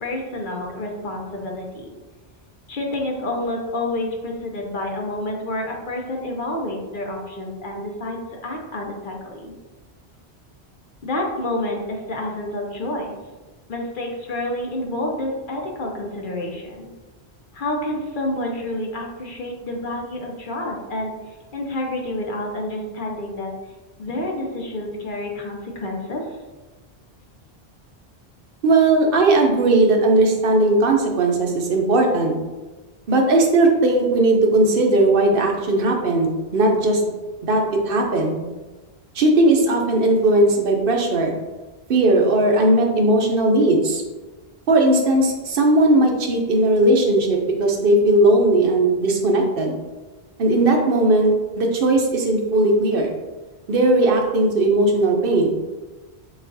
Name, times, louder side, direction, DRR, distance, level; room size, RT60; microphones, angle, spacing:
voice 1, 0.0-1.9 2.7-9.5 11.0-13.2 13.7-16.9 17.5-23.5 24.0-26.4, left 1 dB, 55° left, 0 dB, 0.8 m, -29 dB
voice 2, 28.6-32.4 33.1-37.0 37.4-38.4 39.1-41.3 41.9-44.0 44.7-49.7 50.4-53.1 53.7-55.6, right 2 dB, 60° right, 2 dB, 0.7 m, -18 dB
7.1 x 2.4 x 2.6 m, 1.2 s
omnidirectional pair, 1.1 m